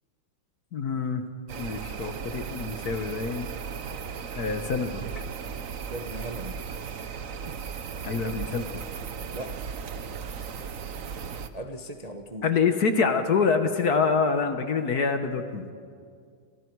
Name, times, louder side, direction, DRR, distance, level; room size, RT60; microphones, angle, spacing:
voice 1, 0.7-1.2 1.6-3.5 4.4-5.1 8.0-8.8 12.4-15.7, left 5 dB, 50° left, 7 dB, 1.5 m, -26 dB
sound 1, 1.5-11.5, right 6 dB, 50° right, 1.1 m, -36 dB
voice 2, 5.9-6.7 7.4-7.6 9.3-9.7 11.5-12.5, right 1 dB, 25° right, 4 dB, 0.9 m, -38 dB
28.5 x 28.0 x 4.7 m, 2.2 s
omnidirectional pair, 2.3 m